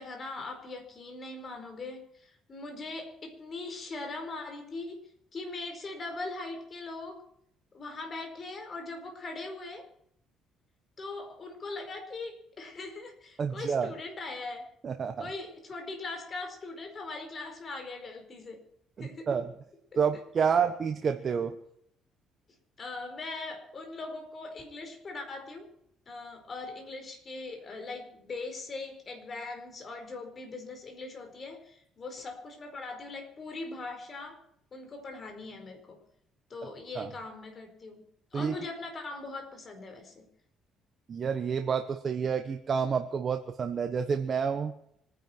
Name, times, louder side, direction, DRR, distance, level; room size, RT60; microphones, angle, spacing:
voice 1, 0.0-7.2 7.7-9.9 11.0-14.7 15.2-18.7 19.0-19.3 19.9-20.2 22.8-25.7 26.1-34.4 34.7-36.0 36.5-38.0 38.3-40.3, left 3 dB, 35° left, 5 dB, 4.6 m, -40 dB
voice 2, 13.4-13.9 14.8-15.3 19.0-19.5 20.0-21.6 36.9-37.1 38.3-38.5 41.1-44.7, right 6 dB, 40° right, 6 dB, 1.2 m, -29 dB
25.5 x 10.5 x 4.6 m, 0.72 s
cardioid pair, 125°, 0 cm